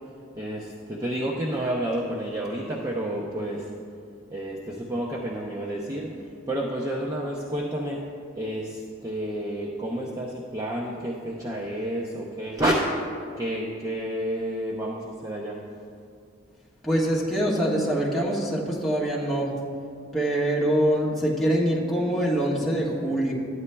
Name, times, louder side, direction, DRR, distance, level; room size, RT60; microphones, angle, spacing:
voice 1, 0.4-3.6 4.3-8.0 8.4-12.7 13.4-15.6, right 1 dB, 15° right, -3 dB, 0.6 m, -30 dB
voice 2, 16.8-19.5 20.1-23.3, right 1 dB, ahead, -7 dB, 1.4 m, -24 dB
13.0 x 9.5 x 2.2 m, 2.3 s
head